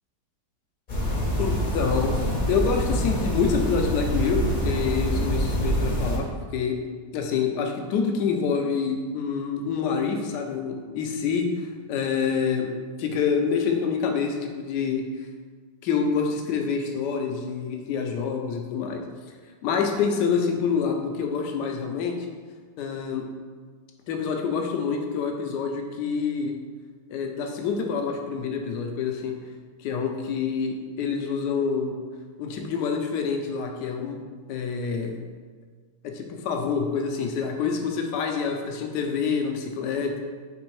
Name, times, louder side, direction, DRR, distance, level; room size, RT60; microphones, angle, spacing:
sound 1, 0.9-6.2, equal, 40° left, 0.7 m, -25 dB
voice 1, 1.4-6.8 7.1-12.7 13.0-15.0 15.8-19.0 19.6-22.2 22.8-23.2 24.1-26.6 27.1-29.3 29.8-32.0 32.4-34.2 34.5-35.2 36.0-40.2, left 6 dB, 75° left, 3 dB, 1.1 m, -27 dB
4.3 x 3.3 x 3.1 m, 1.5 s
omnidirectional pair, 2.0 m